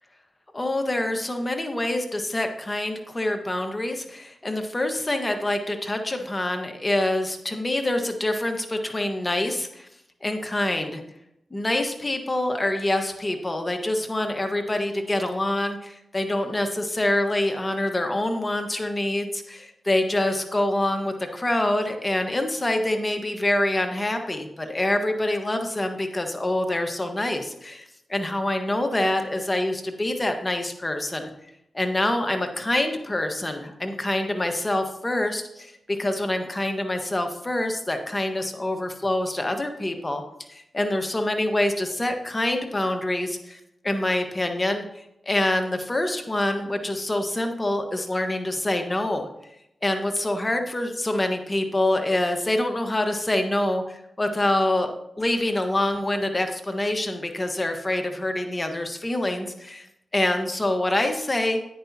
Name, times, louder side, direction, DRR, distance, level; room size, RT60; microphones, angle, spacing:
voice 1, 0.5-9.9 10.2-11.0 11.5-31.3 31.7-40.2 40.5-49.3 49.8-59.9 60.1-61.6, left 1 dB, 30° left, 5 dB, 1.4 m, -26 dB
10.5 x 10.0 x 2.9 m, 0.79 s
cardioid pair, 45°, 0 cm